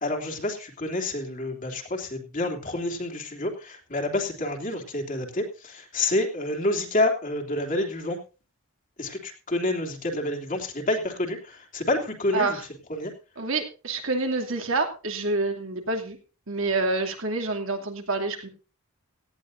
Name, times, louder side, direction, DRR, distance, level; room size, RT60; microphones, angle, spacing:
voice 1, 0.0-8.2 9.0-12.6 12.9-13.1, left 2 dB, 35° left, 2 dB, 3.0 m, -28 dB
voice 2, 12.3-12.6 13.4-16.2 16.5-18.5, right 3 dB, 65° right, 3 dB, 2.7 m, -27 dB
18.0 x 14.0 x 2.7 m, 0.33 s
head